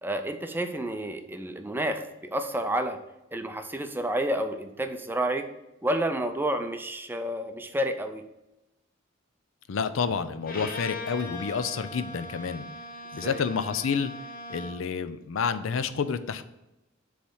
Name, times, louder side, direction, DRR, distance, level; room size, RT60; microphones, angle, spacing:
voice 1, 0.0-3.0 3.3-5.5 5.8-8.2 13.2-13.4, right 1 dB, 10° right, 7 dB, 0.5 m, -30 dB
voice 2, 9.7-12.6 13.1-14.1 14.5-16.4, left 6 dB, 75° left, 12 dB, 0.5 m, -29 dB
Bowed string instrument, 10.4-14.9, left 2 dB, 45° left, 0.9 m, -40 dB
7.0 x 3.2 x 5.5 m, 0.95 s
head